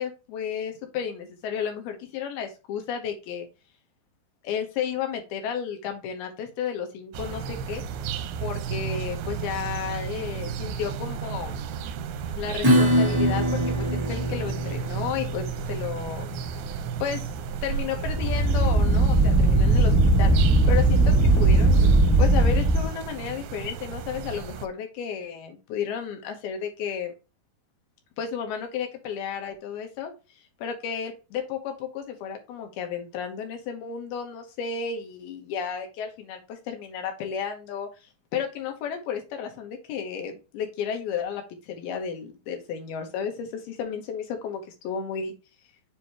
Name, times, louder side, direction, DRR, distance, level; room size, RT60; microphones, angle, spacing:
voice 1, 0.0-3.5 4.4-7.8 8.4-11.6 12.4-16.3 17.0-17.2 17.6-20.3 20.7-27.1 28.2-30.1 30.6-45.3, left 7 dB, 75° left, 4 dB, 3.0 m, -33 dB
sound 1, 7.1-24.7, right 7 dB, 80° right, 2.5 m, -34 dB
Acoustic guitar / Strum, 12.6-19.8, equal, 20° right, 0.6 m, -26 dB
sound 2, 18.0-22.9, right 2 dB, 35° right, 1.1 m, -19 dB
7.1 x 3.0 x 4.5 m, 0.30 s
omnidirectional pair, 4.6 m